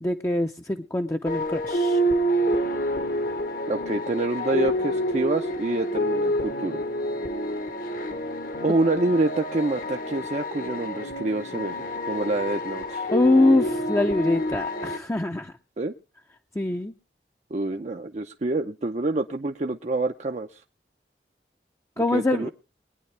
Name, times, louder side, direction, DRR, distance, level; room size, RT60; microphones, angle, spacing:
voice 1, 0.0-2.0 13.1-15.5 16.6-16.9 22.0-22.5, left 2 dB, 15° left, 4 dB, 0.6 m, -23 dB
sound 1, 1.3-15.0, equal, 55° left, 1.1 m, -28 dB
voice 2, 3.7-6.8 8.6-13.1 15.8-15.9 17.5-20.6 22.0-22.5, right 2 dB, 40° right, 5 dB, 0.6 m, -27 dB
22.0 x 9.7 x 3.3 m, 0.31 s
head